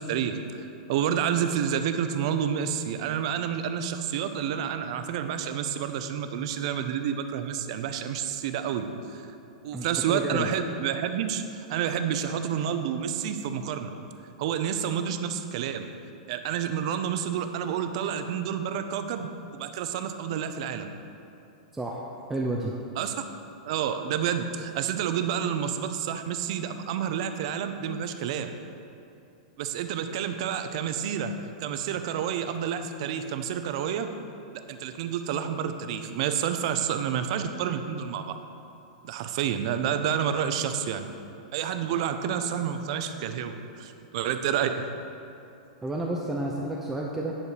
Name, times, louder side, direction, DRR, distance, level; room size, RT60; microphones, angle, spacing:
voice 1, 0.0-9.3 9.6-13.9 14.4-15.9 16.3-20.9 23.0-23.1 23.6-28.5 29.6-31.3 31.6-34.1 34.7-38.3 39.0-41.0 41.5-44.8, right 8 dB, 50° right, 8 dB, 0.7 m, -29 dB
voice 2, 9.7-10.5 21.7-22.0 22.3-22.8 45.8-47.4, right 2 dB, 5° right, -2 dB, 0.5 m, -30 dB
9.9 x 4.5 x 6.7 m, 2.8 s
supercardioid pair, 155°, 4 cm